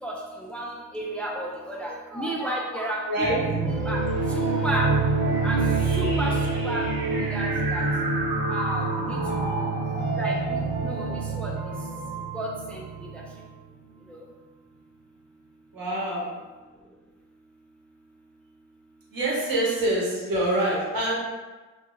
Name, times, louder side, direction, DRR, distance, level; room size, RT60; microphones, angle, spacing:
voice 1, 0.0-4.9 5.4-5.6 6.0-6.4 6.6-6.9 7.2-7.8 8.5-9.2 10.1-11.1 11.3-11.5 12.3-13.2 14.1-14.2, right 1 dB, 5° left, -2 dB, 0.5 m, -32 dB
voice 2, 3.1-3.4 9.2-9.6 15.7-16.4 19.1-21.3, right 1 dB, 70° right, -5 dB, 1.1 m, -26 dB
sound 1, 3.2-13.4, right 3 dB, 85° right, 0.7 m, -26 dB
2.4 x 2.4 x 3.0 m, 1.3 s
supercardioid pair, 50°, 37 cm